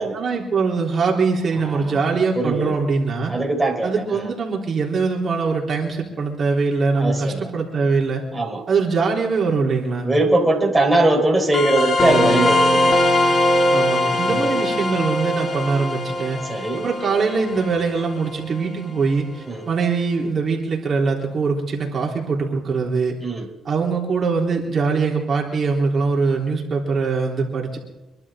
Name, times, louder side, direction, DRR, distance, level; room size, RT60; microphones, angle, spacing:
voice 1, 0.1-3.3 3.8-8.2 8.7-10.1 13.7-16.4 16.8-23.2 23.7-27.8, right 4 dB, 50° right, -1 dB, 3.6 m, -22 dB
voice 2, 1.7-2.0 2.3-2.7 3.3-3.9 7.0-7.5 8.3-8.6 10.0-12.9 14.3-14.4 16.5-16.8 19.5-19.7 23.2-23.4, right 2 dB, 10° right, 0 dB, 4.3 m, -20 dB
sound 1, 11.5-18.6, left 1 dB, 45° left, 3.5 m, -21 dB
26.5 x 11.5 x 3.7 m, 1.0 s
cardioid pair, 90°, 0 cm